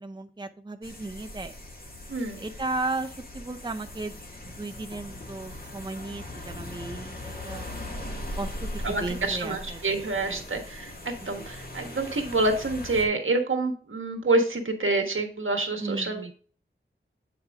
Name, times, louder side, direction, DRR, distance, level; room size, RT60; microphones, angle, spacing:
voice 1, 0.0-1.5 2.4-4.1 4.4-7.7 8.4-8.5 8.9-10.5 11.4-11.5 15.8-16.3, right 2 dB, 20° right, 7 dB, 0.6 m, -35 dB
sound 1, 0.8-13.1, left 1 dB, 45° left, 1.9 m, -40 dB
voice 2, 8.8-16.3, right 2 dB, 70° right, 4 dB, 1.5 m, -27 dB
8.2 x 4.7 x 3.5 m, 0.40 s
wide cardioid pair, 75°, 21 cm